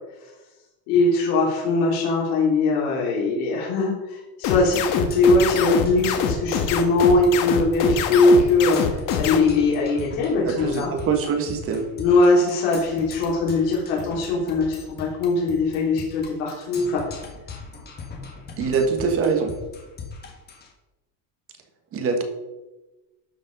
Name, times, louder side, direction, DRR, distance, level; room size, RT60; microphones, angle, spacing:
voice 1, 0.9-10.9 11.9-17.0, left 3 dB, 75° left, -4 dB, 3.2 m, -21 dB
sound 1, 4.4-9.4, left 8 dB, 45° left, 1.3 m, -24 dB
Percussion, 4.7-20.7, left 4 dB, 25° left, 1.5 m, -40 dB
voice 2, 10.4-11.9 18.6-19.5 21.9-22.2, right 5 dB, 30° right, 5 dB, 1.4 m, -23 dB
12.5 x 5.4 x 5.3 m, 1.1 s
cardioid pair, 165°, 43 cm